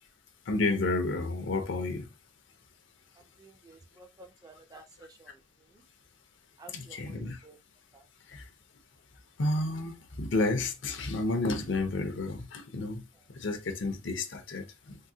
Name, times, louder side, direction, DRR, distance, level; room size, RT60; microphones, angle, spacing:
voice 1, 0.5-2.0 6.7-7.4 9.4-13.0 13.4-15.0, left 2 dB, 65° left, 0.6 m, -31 dB
voice 2, 3.2-5.4 5.7-5.8 6.6-7.6 7.9-8.1, right 3 dB, 20° right, 0.4 m, -54 dB
3.7 x 2.1 x 2.7 m
head